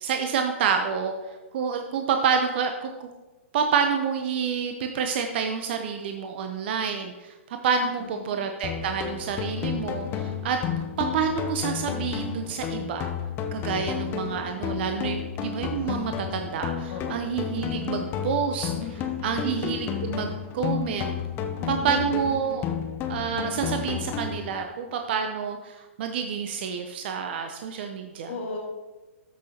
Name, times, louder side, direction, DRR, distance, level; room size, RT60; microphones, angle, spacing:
voice 1, 0.0-1.1 1.5-3.1 3.5-7.3 7.6-10.6 11.0-13.1 13.5-18.7 19.2-21.2 21.7-22.6 23.1-28.3, right 6 dB, 50° right, 5 dB, 0.8 m, -28 dB
voice 2, 7.8-8.5 14.1-14.4 16.9-17.3 18.8-19.4 21.6-22.1 28.3-28.6, left 4 dB, 60° left, -1 dB, 1.7 m, -38 dB
sound 1, 8.6-24.6, left 8 dB, 30° left, 0.7 m, -32 dB
13.0 x 6.1 x 2.9 m, 1.1 s
hypercardioid pair, 120°, 7 cm